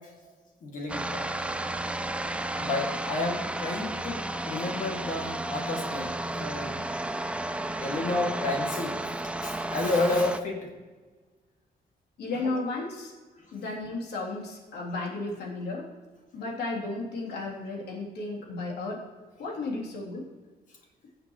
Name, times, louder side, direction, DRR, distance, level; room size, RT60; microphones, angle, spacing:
voice 1, 0.6-1.3 2.6-6.8 7.8-9.0 9.4-10.7 12.3-12.5, left 2 dB, 50° left, 0 dB, 2.4 m, -31 dB
sound 1, 0.9-10.4, right 1 dB, 5° right, 0.5 m, -33 dB
voice 2, 12.2-13.1 13.5-15.9 16.3-19.0 19.4-20.3, left 2 dB, 80° left, -2 dB, 3.2 m, -34 dB
19.5 x 7.3 x 3.2 m, 1.3 s
cardioid pair, 125°, 17 cm